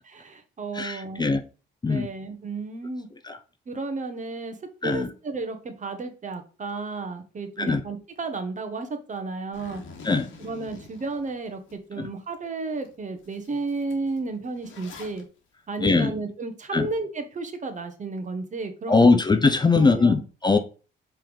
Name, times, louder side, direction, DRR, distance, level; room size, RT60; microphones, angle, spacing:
voice 1, 0.1-1.3 1.9-3.1 3.7-4.5 4.8-9.8 10.4-15.2 15.7-19.1 19.7-20.2, right 3 dB, 40° right, 1.2 m, -33 dB
voice 2, 0.7-1.4 1.8-2.1 3.2-3.4 4.8-5.1 7.6-7.8 10.0-10.3 12.0-12.1 15.8-16.1 16.7-16.9 18.9-20.6, left 3 dB, 20° left, 0.6 m, -21 dB
Zipper (clothing), 9.5-11.8 12.2-12.3 12.8-12.9 13.2-15.2, left 4 dB, 85° left, 1.8 m, -46 dB
5.6 x 3.4 x 5.3 m
cardioid pair, 90°, 20 cm